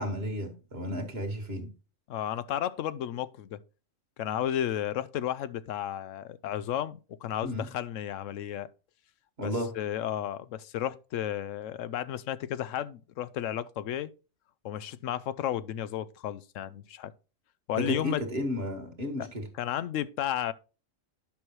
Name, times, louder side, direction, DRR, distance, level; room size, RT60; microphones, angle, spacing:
voice 1, 0.0-1.7 7.4-7.7 9.4-9.7 17.7-19.5, equal, 50° right, 2.1 m, -33 dB
voice 2, 2.1-3.6 4.2-8.7 9.4-14.1 14.6-17.1 17.7-18.2 19.2-19.3 19.6-20.5, left 11 dB, 80° left, 0.9 m, -33 dB
10.5 x 6.2 x 3.1 m
omnidirectional pair, 1.3 m